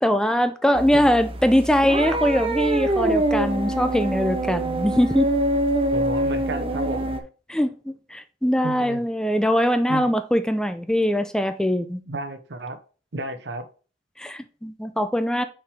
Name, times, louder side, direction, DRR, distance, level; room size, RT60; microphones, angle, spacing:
voice 1, 0.0-5.3 7.5-12.0 14.2-15.4, equal, 5° left, 0.5 m, -22 dB
sound 1, 0.7-7.2, right 1 dB, 30° right, 0.8 m, -25 dB
voice 2, 5.9-7.2 8.6-9.0 9.9-10.1 12.1-12.8 13.1-13.7, right 2 dB, 75° right, 0.9 m, -32 dB
5.8 x 5.0 x 3.5 m
head